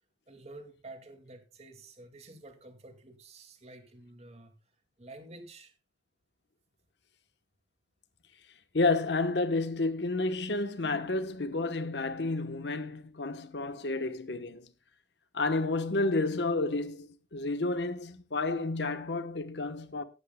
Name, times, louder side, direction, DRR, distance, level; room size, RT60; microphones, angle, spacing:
voice 1, 0.3-4.5 5.0-5.7, right 2 dB, 35° right, 2.2 m, -50 dB
voice 2, 8.7-14.7 15.3-20.0, left 3 dB, 70° left, 1.1 m, -30 dB
17.0 x 12.0 x 2.2 m
head